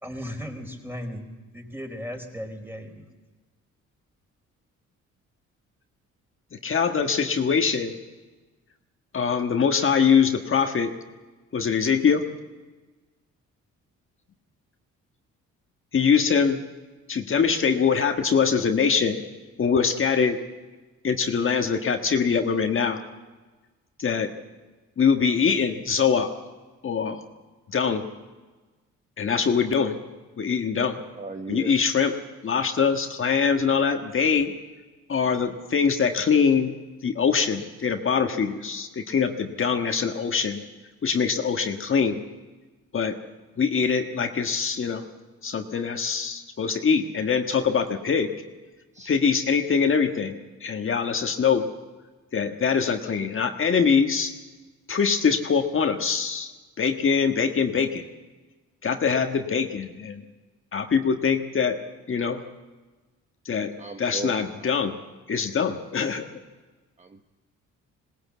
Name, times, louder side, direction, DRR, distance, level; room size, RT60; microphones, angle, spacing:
voice 1, 0.0-1.3 1.5-3.1, equal, 5° right, 3 dB, 4.2 m, -36 dB
voice 2, 6.6-7.9 9.1-10.9 11.5-12.2 15.9-16.6 17.1-19.2 19.6-20.4 21.0-23.0 24.0-24.3 25.0-26.3 26.8-27.2 27.7-28.0 29.2-29.9 30.4-31.0 31.5-32.1 32.4-34.5 35.1-36.7 37.0-40.6 41.0-42.2 42.9-43.1 43.6-45.0 45.4-48.3 49.0-51.7 52.3-54.3 54.9-58.0 58.8-60.2 60.7-61.8 62.1-62.4 63.4-63.7 64.0-64.9 65.3-66.2, left 6 dB, 45° left, 5 dB, 1.5 m, -23 dB
voice 3, 31.2-31.7 48.9-49.1 63.8-64.3 64.6-64.7 67.0-67.1, right 3 dB, 25° right, 5 dB, 1.1 m, -36 dB
21.0 x 19.0 x 8.4 m, 1.3 s
cardioid pair, 90°, 30 cm